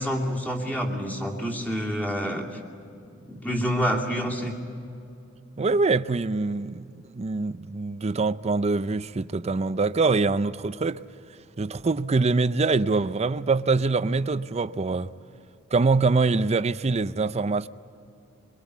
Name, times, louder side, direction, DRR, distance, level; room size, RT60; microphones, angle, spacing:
voice 1, 0.0-2.5 3.2-4.5, equal, 10° left, 2.7 m, -27 dB
voice 2, 5.6-6.9 7.1-11.0 11.6-15.1 15.7-17.7, right 3 dB, 35° right, 0.5 m, -24 dB
23.0 x 23.0 x 8.2 m
head